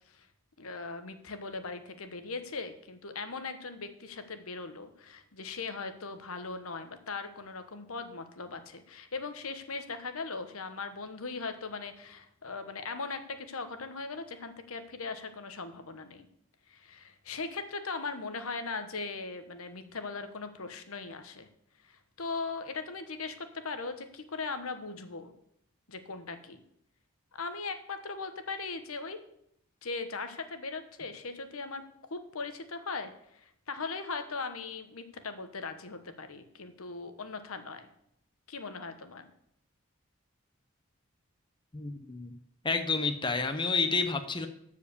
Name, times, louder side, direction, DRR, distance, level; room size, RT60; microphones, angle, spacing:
voice 1, 0.6-16.3 16.7-21.5 21.8-25.3 25.9-26.6 27.4-29.2 29.8-31.8 32.1-37.9 38.5-39.3, left 4 dB, 80° left, 9 dB, 1.1 m, -39 dB
voice 2, 41.7-42.3 42.6-44.5, left 4 dB, 20° left, 8 dB, 0.7 m, -29 dB
14.0 x 4.9 x 6.8 m, 0.74 s
head